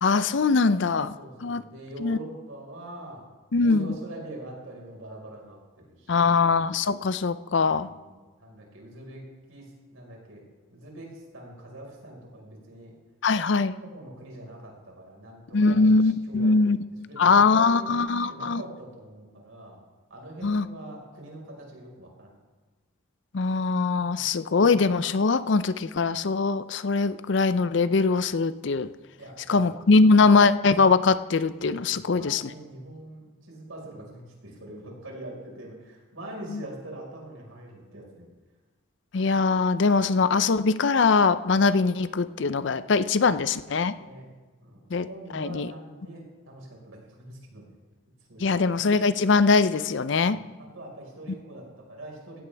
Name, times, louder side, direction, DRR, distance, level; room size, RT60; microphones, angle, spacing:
voice 1, 0.0-1.1 1.4-1.6 2.0-2.2 3.5-4.0 6.1-7.9 13.2-13.8 15.5-16.8 17.2-18.6 20.4-20.7 23.3-28.9 29.5-32.5 36.5-36.6 39.1-43.9 44.9-45.1 45.3-45.7 48.4-50.4, left 4 dB, 60° left, 14 dB, 0.5 m, -22 dB
voice 2, 0.7-3.2 3.6-6.6 7.6-10.4 10.7-12.9 13.8-16.5 17.1-19.8 20.1-22.4 24.0-24.2 29.2-30.3 31.9-38.2 43.9-44.3 44.6-47.8 48.3-48.6 50.2-52.4, right 1 dB, 90° right, -1 dB, 4.8 m, -43 dB
16.5 x 16.0 x 3.4 m, 1.3 s
head